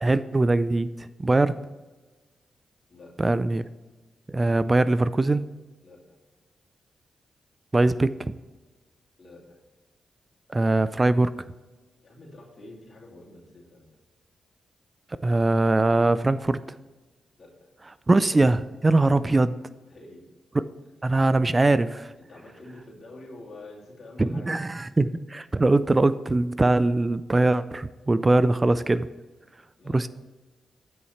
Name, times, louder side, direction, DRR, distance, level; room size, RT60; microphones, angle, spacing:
voice 1, 0.0-1.6 3.2-3.7 4.3-5.4 7.7-8.3 10.5-11.5 15.2-16.6 18.1-19.5 20.5-20.6 21.0-22.1 24.2-29.1 29.9-30.1, right 2 dB, 30° right, 15 dB, 0.4 m, -22 dB
voice 2, 5.8-6.2 9.2-9.6 12.0-13.8 17.4-17.7 19.1-19.2 19.8-20.2 22.3-24.5 29.8-30.1, left 2 dB, 55° left, -3 dB, 2.7 m, -47 dB
9.5 x 5.5 x 4.3 m, 1.2 s
supercardioid pair, 40°, 0 cm